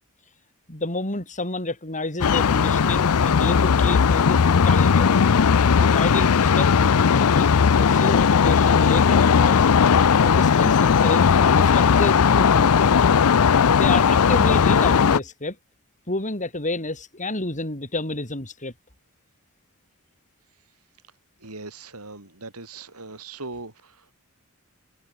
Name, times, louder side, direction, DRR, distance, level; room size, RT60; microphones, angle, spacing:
voice 1, 0.7-5.1 5.8-7.5 7.8-9.7 10.2-13.0 13.8-15.6 16.1-18.7, left 2 dB, 35° left, 7.8 m, -29 dB
sound 1, 2.2-15.2, left 6 dB, 85° left, 0.5 m, -17 dB
voice 2, 21.4-24.1, right 3 dB, 90° right, 6.6 m, -39 dB
head